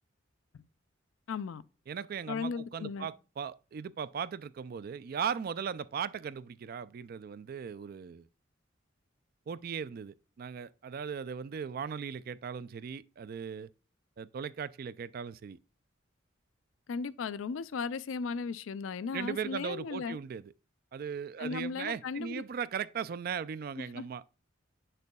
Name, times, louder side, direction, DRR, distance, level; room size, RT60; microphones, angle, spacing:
voice 1, 1.3-1.6 2.3-3.1 16.9-20.2 21.4-22.4 23.8-24.1, left 5 dB, 75° left, 0.4 m, -36 dB
voice 2, 1.9-8.3 9.5-13.7 14.2-15.6 19.1-20.4 20.9-24.2, right 7 dB, 50° right, 0.3 m, -38 dB
8.2 x 6.6 x 2.3 m
head